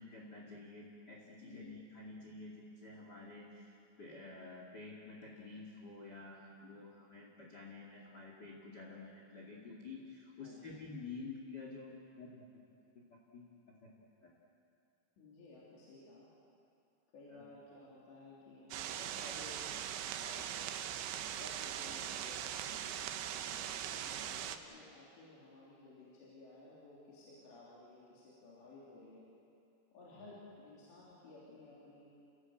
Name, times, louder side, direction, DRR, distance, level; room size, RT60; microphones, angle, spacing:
voice 1, 0.0-12.4 13.3-13.5 13.8-13.9 14.2-14.3 17.3-17.4 30.1-30.2, left 3 dB, 35° left, -2 dB, 1.7 m, -50 dB
voice 2, 15.2-16.3 17.1-19.6 20.1-20.5 21.4-22.9 23.4-29.3 29.9-32.1, left 2 dB, 60° left, -7 dB, 5.5 m, -56 dB
sound 1, 18.7-24.6, right 10 dB, 75° right, 2.9 m, -41 dB
29.0 x 17.5 x 8.0 m, 2.6 s
omnidirectional pair, 5.8 m